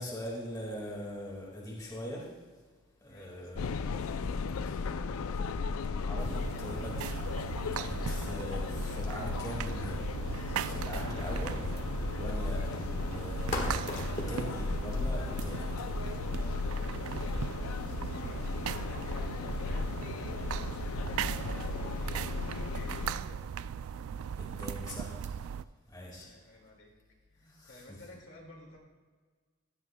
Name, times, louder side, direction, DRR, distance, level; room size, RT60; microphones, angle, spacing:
voice 1, 0.0-2.3 3.0-3.9 4.7-4.9 5.3-7.2 7.7-11.7 12.1-15.7 24.4-25.1 25.9-26.3 27.5-28.0, equal, 15° left, -3 dB, 1.9 m, -42 dB
voice 2, 3.1-3.7 18.1-20.6 21.9-23.4 26.1-26.9 27.3-28.8, left 1 dB, 60° left, -1 dB, 2.1 m, -53 dB
sound 1, 3.6-23.1, left 4 dB, 80° left, 0.4 m, -36 dB
sound 2, 6.1-22.4, left 1 dB, 35° left, 1.5 m, -47 dB
sound 3, 6.2-25.6, right 8 dB, 85° right, 0.3 m, -38 dB
16.0 x 11.0 x 2.2 m, 1.5 s
head